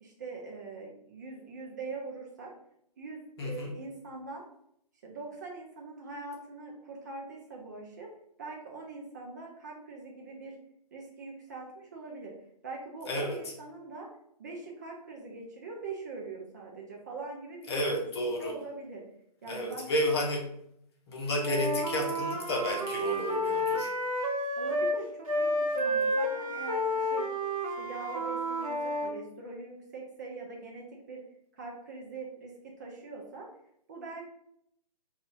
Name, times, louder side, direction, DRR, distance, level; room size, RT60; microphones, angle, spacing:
voice 1, 0.0-2.5 3.0-4.4 5.0-8.1 8.4-10.5 10.9-12.3 12.6-14.1 14.4-17.7 18.4-19.0 19.4-19.9 24.6-27.3 27.8-31.2 31.5-33.5 33.9-34.2, right 3 dB, 25° right, -1 dB, 0.4 m, -42 dB
voice 2, 3.4-3.7 13.0-13.4 17.7-18.6 19.5-20.5 21.1-23.9, left 1 dB, 40° left, 0 dB, 0.8 m, -31 dB
Wind instrument woodwind instrument, 21.3-25.0 25.2-29.1, equal, 55° right, 0.8 m, -31 dB
2.6 x 2.4 x 4.1 m, 0.73 s
figure-of-eight pair, 130°, 21 cm